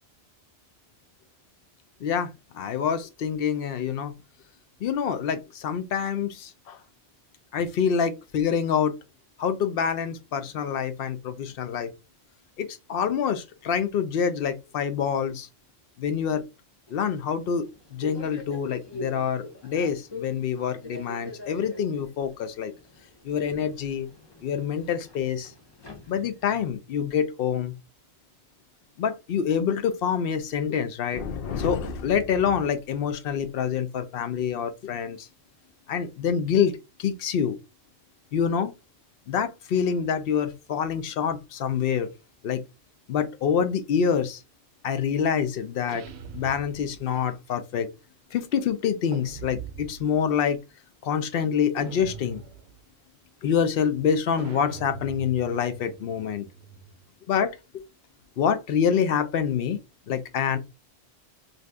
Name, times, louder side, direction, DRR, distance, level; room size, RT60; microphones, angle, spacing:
voice 1, 2.0-4.1 4.8-6.8 7.5-8.9 9.4-11.9 12.6-15.5 16.0-16.4 16.9-17.6 17.9-22.7 23.2-24.1 24.4-25.5 26.1-27.7 29.0-35.3 35.9-37.6 38.3-38.7 39.3-42.1 42.4-42.6 43.1-44.4 44.8-46.0 46.3-47.9 48.3-50.6 51.0-52.4 53.4-56.5 57.3-57.8 58.4-59.8 60.1-60.6, left 7 dB, 65° left, 0.7 m, -26 dB
Subway metro underground, 16.9-26.6, left 1 dB, 30° left, 0.6 m, -44 dB
sound 1, 45.9-47.2 49.1-50.2 51.8-52.8 54.4-57.1, right 6 dB, 75° right, 0.8 m, -42 dB
2.7 x 2.5 x 3.2 m
omnidirectional pair, 1.1 m